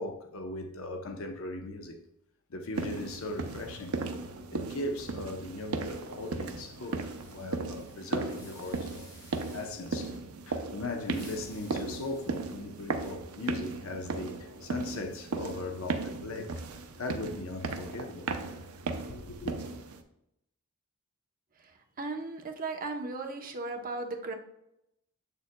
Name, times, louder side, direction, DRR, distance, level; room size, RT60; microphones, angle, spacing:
voice 1, 0.0-2.0 2.5-4.0 4.5-9.1 9.5-10.2 10.5-16.5 17.0-18.3 19.1-19.6, left 2 dB, 65° left, 0.8 m, -39 dB
sound 1, 2.7-20.0, right 3 dB, 75° right, 0.6 m, -37 dB
sound 2, 5.8-10.0 10.8-13.2, left 1 dB, 20° left, 2.6 m, -57 dB
voice 2, 22.0-24.3, right 3 dB, 40° right, 0.8 m, -36 dB
7.5 x 6.8 x 2.2 m
head